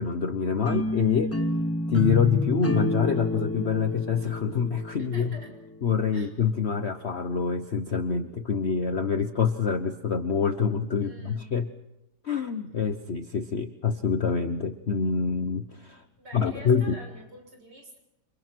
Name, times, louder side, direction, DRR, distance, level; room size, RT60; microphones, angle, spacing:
voice 1, 0.0-1.3 1.9-5.3 5.8-11.7 12.2-16.0 16.3-16.9, left 6 dB, 45° left, 8 dB, 1.2 m, -26 dB
sound 1, 0.6-5.7, left 1 dB, 10° left, 1.1 m, -29 dB
voice 2, 5.0-5.5 6.1-6.3 11.0-11.4 16.2-18.0, right 1 dB, 85° right, 2 dB, 7.6 m, -46 dB
30.0 x 28.0 x 4.6 m, 0.91 s
omnidirectional pair, 1.8 m